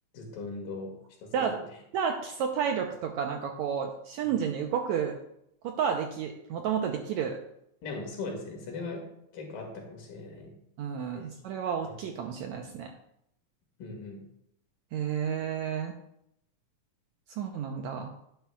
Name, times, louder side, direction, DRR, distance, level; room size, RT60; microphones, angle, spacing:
voice 1, 0.1-0.9 1.2-1.4 4.2-4.3 7.8-9.0 9.3-10.5 11.1-11.3 11.9-12.0 13.8-14.2, left 3 dB, 85° left, 2 dB, 3.7 m, -39 dB
voice 2, 1.9-5.2 5.6-7.4 10.8-12.9 14.9-15.9 17.4-18.1, right 7 dB, 80° right, 3 dB, 1.7 m, -31 dB
11.5 x 10.5 x 2.3 m, 0.77 s
omnidirectional pair, 3.9 m